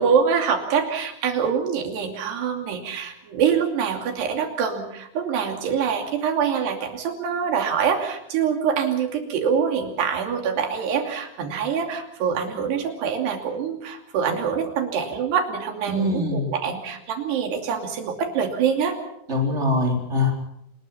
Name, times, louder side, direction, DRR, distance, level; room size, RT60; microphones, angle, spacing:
voice 1, 0.0-18.9, right 7 dB, 85° right, 4 dB, 4.8 m, -25 dB
voice 2, 15.9-16.5 19.3-20.3, left 2 dB, 15° right, 2 dB, 4.2 m, -23 dB
28.0 x 20.0 x 5.8 m, 0.78 s
omnidirectional pair, 4.6 m